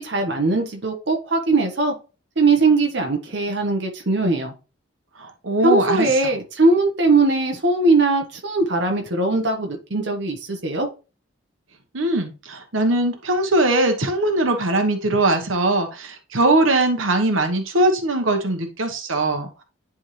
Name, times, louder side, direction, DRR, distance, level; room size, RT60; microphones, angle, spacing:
voice 1, 0.0-1.9 2.4-4.5 5.6-10.9, right 3 dB, 60° right, 1.0 m, -20 dB
voice 2, 5.2-6.1 11.9-19.6, right 2 dB, 85° right, 1.1 m, -21 dB
10.0 x 3.6 x 3.1 m
head